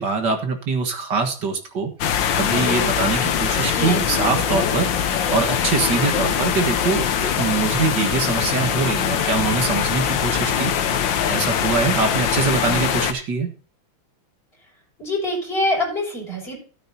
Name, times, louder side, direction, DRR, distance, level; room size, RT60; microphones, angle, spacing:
voice 1, 0.0-1.9 2.3-10.7 11.3-13.5, right 4 dB, 55° right, 5 dB, 2.1 m, -23 dB
sound 1, 2.0-13.1, left 8 dB, 65° left, 1.5 m, -22 dB
voice 2, 3.7-4.0 15.0-16.6, left 1 dB, 25° left, -2 dB, 6.7 m, -24 dB
13.0 x 12.0 x 2.8 m, 0.39 s
omnidirectional pair, 2.4 m